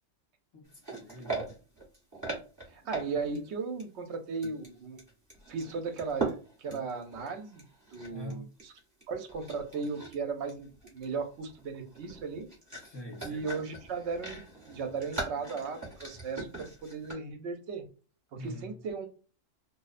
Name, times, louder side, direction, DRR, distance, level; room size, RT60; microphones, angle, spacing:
voice 1, 0.5-1.5 8.1-8.5 12.8-13.4 18.3-18.7, equal, 25° left, 0.7 m, -44 dB
sound 1, 0.7-3.5 3.8-3.9 4.4-8.3 8.6-9.0 9.3-10.2 10.5-17.1, right 3 dB, 15° right, 0.9 m, -41 dB
voice 2, 2.7-5.0 5.5-7.6 7.9-8.7 9.1-12.5 13.2-17.9 18.4-19.1, right 4 dB, 65° right, 0.8 m, -36 dB
2.5 x 2.1 x 2.4 m
omnidirectional pair, 1.4 m